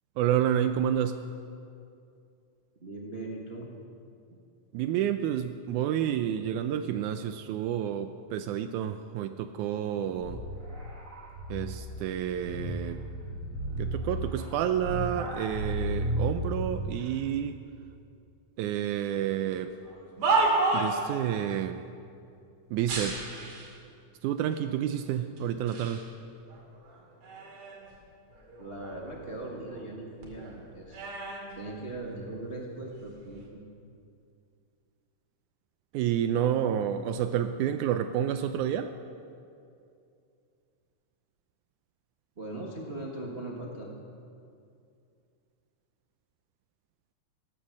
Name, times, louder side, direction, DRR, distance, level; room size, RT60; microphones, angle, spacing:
voice 1, 0.2-1.2 4.7-10.4 11.5-13.0 13.8-17.6 18.6-19.7 20.7-21.8 22.7-23.2 24.2-26.0 35.9-38.9, right 10 dB, 80° right, 9 dB, 2.0 m, -29 dB
voice 2, 2.8-3.7 28.6-31.1 31.5-33.6 42.4-43.9, right 2 dB, 45° right, -2 dB, 0.7 m, -39 dB
sound 1, 10.2-17.0, right 1 dB, 30° right, 2.0 m, -34 dB
sound 2, 19.8-21.1 22.8-23.8 24.5-24.6 25.4-26.0 26.5-27.9 28.3-30.0 30.2-32.4 33.1-33.4, right 3 dB, 65° right, 3.6 m, -32 dB
15.0 x 14.5 x 6.4 m, 2.5 s
omnidirectional pair, 3.6 m